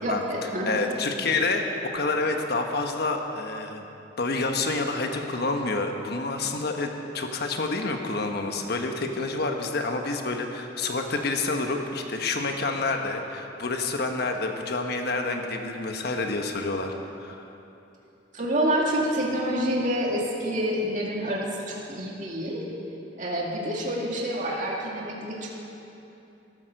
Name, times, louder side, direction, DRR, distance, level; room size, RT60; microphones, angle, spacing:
voice 1, 0.0-0.8 18.3-22.6 23.2-25.5, equal, 45° right, -3 dB, 2.2 m, -27 dB
voice 2, 0.7-3.9 4.2-17.4, left 3 dB, 60° left, 4 dB, 1.2 m, -28 dB
14.0 x 13.0 x 6.5 m, 2.9 s
head